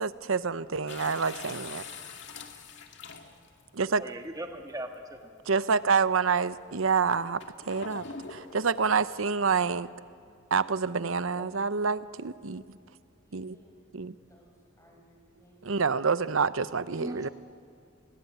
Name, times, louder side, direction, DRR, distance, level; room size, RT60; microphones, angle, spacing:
voice 1, 0.0-1.8 3.7-4.0 5.5-7.4 7.7-8.0 8.3-9.9 10.5-12.6 13.3-13.6 13.9-14.1 15.6-17.3, right 5 dB, 80° right, 15 dB, 0.8 m, -27 dB
sound 1, 0.9-3.6 4.5-4.6 7.4-9.0, left 5 dB, 60° left, 2.3 m, -43 dB
voice 2, 4.0-5.2 11.3-11.5 15.8-16.1 16.9-17.3, right 1 dB, 15° right, 4 dB, 1.6 m, -39 dB
voice 3, 13.2-13.8 14.3-15.8, right 1 dB, 15° left, 0 dB, 5.8 m, -61 dB
29.5 x 21.0 x 9.2 m, 2.3 s
head